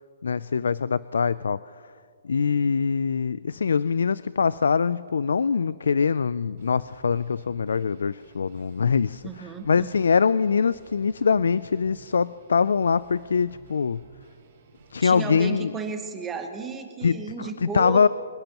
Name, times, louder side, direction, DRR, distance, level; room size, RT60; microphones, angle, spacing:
voice 1, 0.2-1.6 2.2-14.0 14.9-15.7 17.0-18.1, left 5 dB, 85° left, 18 dB, 0.3 m, -23 dB
sound 1, 6.6-15.3, right 6 dB, 40° right, 4.4 m, -53 dB
voice 2, 9.2-9.9 15.0-18.0, right 5 dB, 10° right, 5 dB, 0.9 m, -34 dB
25.5 x 16.0 x 3.0 m, 2.3 s
hypercardioid pair, 170°, 0 cm